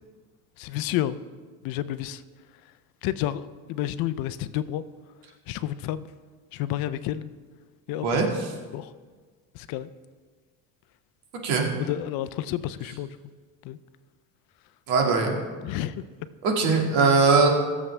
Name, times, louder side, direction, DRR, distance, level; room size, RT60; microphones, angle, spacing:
voice 1, 0.6-1.2 1.6-2.2 3.0-4.8 5.5-6.1 6.5-7.3 7.9-8.3 8.7-8.9 9.5-9.9 11.7-13.2 13.6-13.8 15.6-16.1, left 13 dB, 60° left, 14 dB, 0.6 m, -30 dB
voice 2, 14.9-15.4 16.4-17.5, right 4 dB, 70° right, 1 dB, 2.2 m, -20 dB
21.0 x 7.3 x 3.3 m, 1.5 s
cardioid pair, 145°, 40 cm